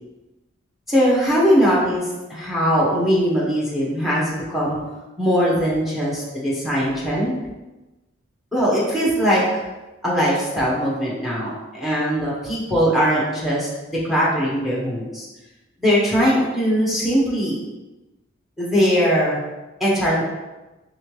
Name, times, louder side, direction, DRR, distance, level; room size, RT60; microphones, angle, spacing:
voice 1, 0.9-2.0 2.3-4.8 5.2-7.3 8.5-9.6 10.0-15.3 15.8-17.6 18.6-19.4 19.8-20.2, equal, ahead, -6 dB, 0.8 m, -20 dB
3.6 x 3.2 x 3.0 m, 1.1 s
head